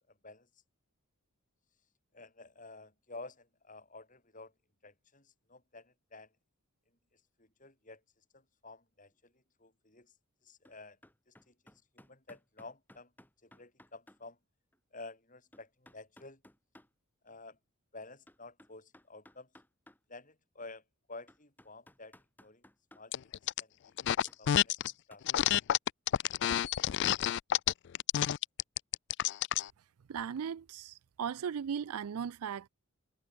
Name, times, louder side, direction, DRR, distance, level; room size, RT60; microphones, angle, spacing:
voice 1, 2.1-4.5 4.8-6.3 7.4-8.0 8.3-10.1 10.4-11.0 11.3-11.5 11.9-13.1 13.4-14.4 14.9-16.4 17.2-17.6 17.9-19.5 20.1-20.8 21.1-22.1 22.4-22.6 22.9-23.1 23.4-24.8 25.1-25.2, left 3 dB, 35° left, 7.9 m, -51 dB
sound 1, 10.6-10.8 11.0-14.2 14.7-14.8 15.5-16.9 18.3-20.0 20.6-20.7 21.3-23.0 24.3-25.2, left 1 dB, 10° left, 4.0 m, -59 dB
sound 2, 23.1-23.6 24.0-24.9 25.3-29.7, left 11 dB, 50° left, 0.3 m, -29 dB
voice 2, 30.1-32.7, right 7 dB, 80° right, 0.4 m, -37 dB
head